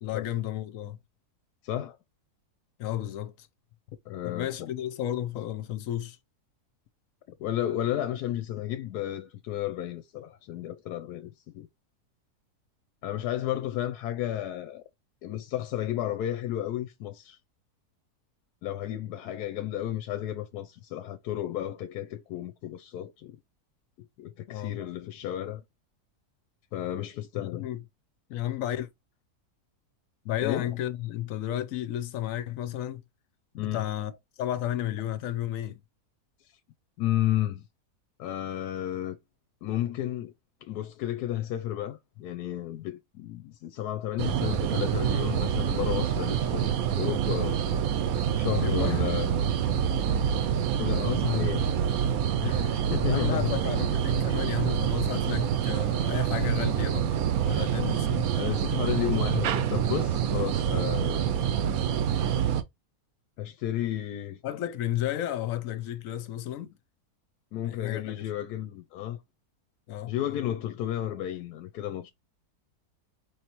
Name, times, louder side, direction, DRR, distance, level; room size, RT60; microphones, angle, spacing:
voice 1, 0.0-1.0 2.8-3.5 4.2-6.2 19.2-19.3 24.5-24.8 27.3-27.8 28.3-28.9 30.2-33.0 33.5-34.1 34.4-35.8 48.6-49.1 51.2-51.9 53.1-57.1 57.4-58.3 64.4-66.8 67.6-68.3 69.9-70.4, left 12 dB, 70° left, 0.9 m, -33 dB
voice 2, 1.6-2.0 4.1-4.7 7.4-11.7 13.0-14.8 15.2-17.4 18.6-23.4 24.2-25.6 26.7-27.7 30.4-30.7 33.6-33.9 37.0-37.7 38.2-39.2 39.6-40.3 40.6-47.6 48.4-49.3 50.8-51.7 52.4-53.6 57.5-57.7 58.3-61.3 63.4-64.4 67.5-69.2 70.1-72.1, left 12 dB, 90° left, 1.1 m, -32 dB
sound 1, 44.2-62.6, right 9 dB, 70° right, 1.0 m, -26 dB
5.2 x 3.1 x 2.9 m
omnidirectional pair, 1.7 m